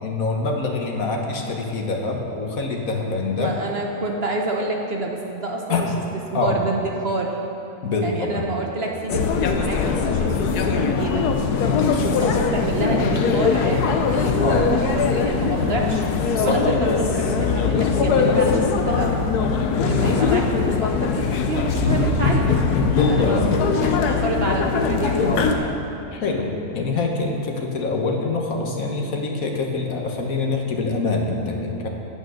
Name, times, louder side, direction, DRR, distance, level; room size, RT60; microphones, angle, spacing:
voice 1, 0.0-3.5 5.7-5.9 6.3-6.6 7.8-8.5 14.4-14.6 16.4-16.6 22.9-23.4 25.2-25.7 26.1-31.9, left 3 dB, 65° left, 1 dB, 1.6 m, -25 dB
voice 2, 3.4-5.9 6.3-7.3 8.0-11.2 12.0-16.0 16.4-19.1 19.8-22.6 23.0-25.7, right 2 dB, 50° right, 0 dB, 1.0 m, -28 dB
sound 1, 9.1-25.6, left 5 dB, 90° left, 1.3 m, -21 dB
sound 2, 21.8-24.4, right 2 dB, 65° right, 1.7 m, -29 dB
9.2 x 9.2 x 6.4 m, 2.7 s
omnidirectional pair, 1.6 m